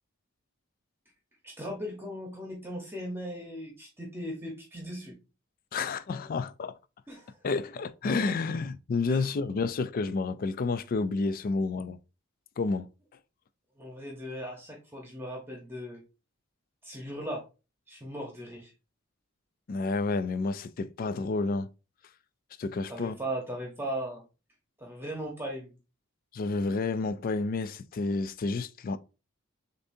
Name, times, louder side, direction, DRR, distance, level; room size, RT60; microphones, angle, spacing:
voice 1, 1.4-5.2 7.1-7.4 9.1-9.3 13.8-16.0 16.8-17.4 17.9-18.7 22.9-24.2 24.8-25.7, equal, 10° right, 1.0 m, -38 dB
voice 2, 5.7-6.8 7.4-12.0 12.6-12.9 19.7-21.7 22.6-23.2 26.3-29.0, left 3 dB, 45° left, 0.4 m, -30 dB
6.7 x 2.7 x 2.7 m
head